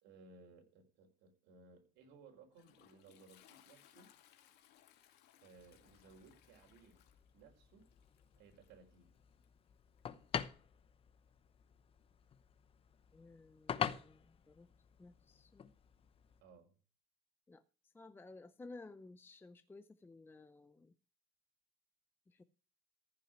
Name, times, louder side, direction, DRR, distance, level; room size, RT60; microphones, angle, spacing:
voice 1, 0.0-4.1 5.3-7.0 7.3-7.9 8.3-9.2 16.4-16.7, right 4 dB, 75° right, 3 dB, 4.8 m, -61 dB
Toilet flush, 2.0-10.3, left 11 dB, 70° left, 2.4 m, -68 dB
sound 1, 5.6-16.4, left 8 dB, 30° left, 0.9 m, -46 dB
voice 2, 13.1-14.7 15.0-15.7 17.5-20.9 22.3-22.4, left 3 dB, 10° left, 11 dB, 0.6 m, -56 dB
14.5 x 6.1 x 7.3 m, 0.39 s
cardioid pair, 140°, 18 cm